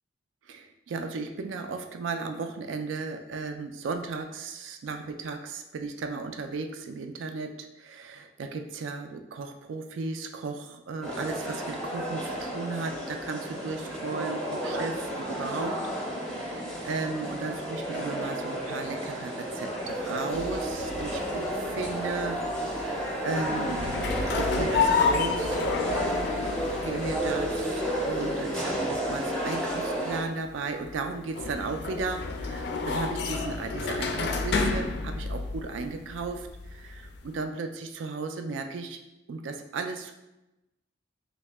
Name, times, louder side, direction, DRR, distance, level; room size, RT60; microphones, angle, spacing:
voice 1, 0.5-15.8 16.1-22.4 22.7-22.9 23.2-25.6 26.6-39.0 39.3-40.1, right 4 dB, 80° right, 6 dB, 0.3 m, -35 dB
sound 1, 11.0-30.2, equal, 5° left, 0.6 m, -32 dB
sound 2, 20.3-37.4, left 4 dB, 60° left, 0.3 m, -32 dB
3.1 x 2.7 x 3.3 m, 0.95 s
head